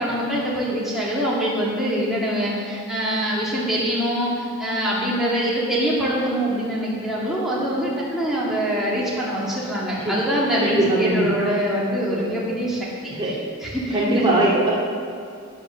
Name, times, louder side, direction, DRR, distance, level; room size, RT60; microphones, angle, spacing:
voice 1, 0.0-12.8 13.2-13.3 13.6-14.2, equal, ahead, -7 dB, 2.3 m, -24 dB
voice 2, 10.6-11.3 13.1-13.4 13.9-14.7, right 2 dB, 20° right, -6 dB, 2.1 m, -21 dB
12.0 x 9.5 x 6.5 m, 2.4 s
head